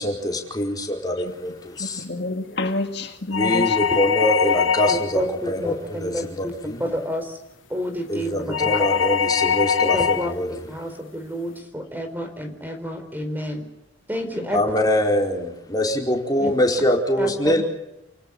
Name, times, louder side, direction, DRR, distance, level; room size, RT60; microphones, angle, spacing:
voice 1, 0.0-2.0 3.3-5.2 5.5-6.8 8.1-10.5 14.5-17.6, left 1 dB, 20° left, 1 dB, 4.7 m, -24 dB
voice 2, 1.8-3.8 14.4-14.6, left 2 dB, 55° left, 4 dB, 2.0 m, -29 dB
sound 1, 3.3-5.2 8.5-10.3, left 7 dB, 80° left, 1.0 m, -22 dB
voice 3, 4.9-6.5 6.8-7.4 7.7-8.8 9.9-10.3 10.7-13.6 14.1-14.7 16.4-16.6 17.2-17.6, equal, 10° right, 6 dB, 4.6 m, -29 dB
29.5 x 18.5 x 7.3 m, 0.90 s
head